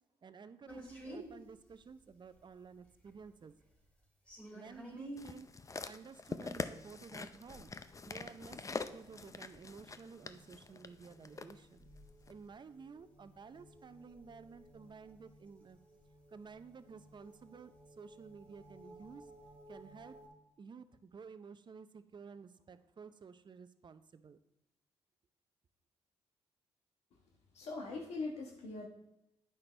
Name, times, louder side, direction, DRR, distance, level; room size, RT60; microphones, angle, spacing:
voice 1, 0.2-3.5 4.5-5.5 5.8-7.7 8.1-11.9 12.3-15.8 16.3-19.3 19.7-20.2 20.6-24.4, right 5 dB, 45° right, 12 dB, 0.6 m, -53 dB
sound 1, 0.7-20.3, right 1 dB, 10° left, 3.0 m, -56 dB
sound 2, 5.2-11.5 12.3-12.4, left 4 dB, 30° left, 0.5 m, -44 dB
voice 2, 27.5-28.9, left 3 dB, 70° left, 1 dB, 1.3 m, -41 dB
8.9 x 5.9 x 3.3 m, 0.90 s
supercardioid pair, 50°, 11 cm